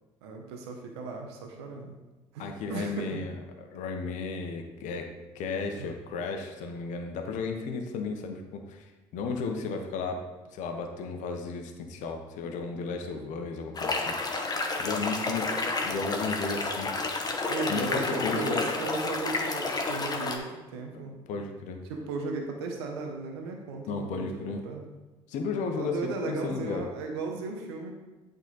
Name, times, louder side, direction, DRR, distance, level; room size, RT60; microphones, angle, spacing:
voice 1, 0.2-2.0 2.3-3.2 5.7-5.9 17.4-21.3 21.9-24.8 25.8-27.9, right 3 dB, 85° right, 2 dB, 0.9 m, -36 dB
voice 2, 2.4-3.3 3.7-5.1 5.3-10.2 10.5-14.5 14.8-15.6 15.8-17.2 17.7-18.7 21.3-21.8 23.8-24.7 25.3-26.0 26.3-26.8, left 4 dB, 70° left, 4 dB, 0.9 m, -34 dB
sound 1, 13.8-20.4, left 3 dB, 30° left, 1.0 m, -30 dB
8.3 x 3.9 x 3.9 m, 1.2 s
hypercardioid pair, 60°, 13 cm